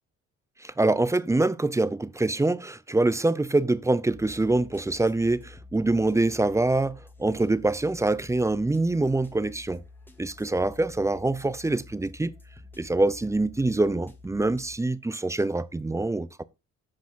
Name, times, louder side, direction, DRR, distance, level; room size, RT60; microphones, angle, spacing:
voice 1, 0.6-9.8 10.2-12.3 12.8-16.4, right 2 dB, 10° right, 0.5 m, -25 dB
sound 1, 4.1-14.7, left 2 dB, 5° left, 1.6 m, -49 dB
13.5 x 5.0 x 3.7 m
cardioid pair, 90°, 30 cm